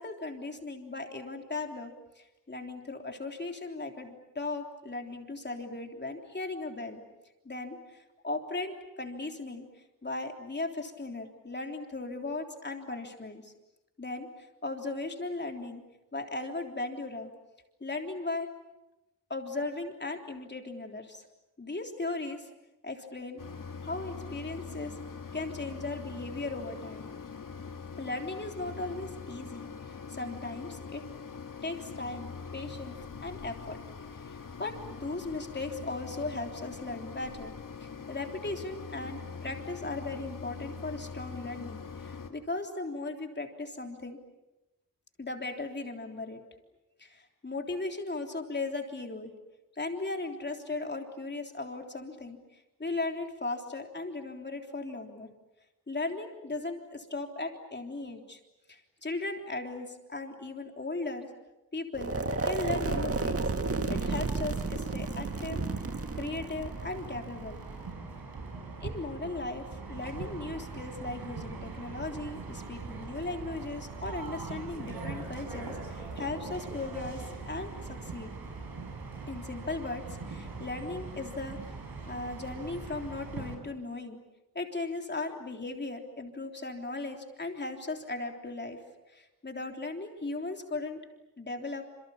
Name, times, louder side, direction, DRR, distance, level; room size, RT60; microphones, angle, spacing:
voice 1, 0.0-7.0 7.4-9.6 10.0-13.5 14.0-15.8 16.1-17.3 17.8-18.5 19.3-21.2 21.6-22.5 22.8-23.4 23.8-25.0 25.3-27.1 28.0-31.0 31.6-33.0 33.2-33.8 34.2-37.5 37.8-44.2 45.2-46.4 47.0-49.3 49.8-55.3 55.9-58.4 58.7-61.3 61.7-62.1 62.4-63.5 63.9-65.8 66.1-67.6 68.8-78.3 79.3-81.8 82.1-84.2 84.5-88.8 89.1-91.0 91.4-91.9, left 2 dB, 30° left, 3 dB, 3.5 m, -37 dB
Mechanisms, 23.4-42.3, left 5 dB, 60° left, 2.5 m, -43 dB
sound 1, 61.9-67.9, right 3 dB, 40° right, 1.8 m, -32 dB
sound 2, 63.9-83.5, right 4 dB, 80° right, 6.3 m, -41 dB
28.5 x 28.0 x 7.2 m, 0.98 s
wide cardioid pair, 150°, 36 cm